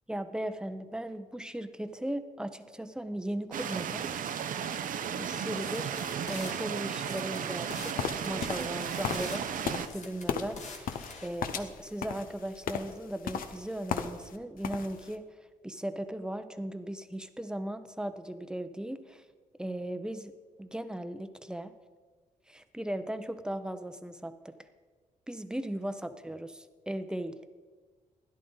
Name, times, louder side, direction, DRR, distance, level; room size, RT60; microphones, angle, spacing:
voice 1, 0.1-4.1 4.6-6.0 6.3-10.9 11.2-15.2 15.6-19.2 19.6-20.3 20.6-21.7 22.5-24.5 25.3-27.4, right 1 dB, 5° right, 10 dB, 0.7 m, -37 dB
sound 1, 3.5-9.9, right 8 dB, 70° right, 0.6 m, -35 dB
sound 2, 5.6-6.5 7.0-8.0 8.2-9.4 9.9-11.3, left 4 dB, 55° left, 1.8 m, -45 dB
sound 3, 8.0-14.4 14.6-15.1, left 7 dB, 80° left, 0.7 m, -36 dB
12.5 x 11.0 x 3.9 m, 1.4 s
cardioid pair, 80°, 15 cm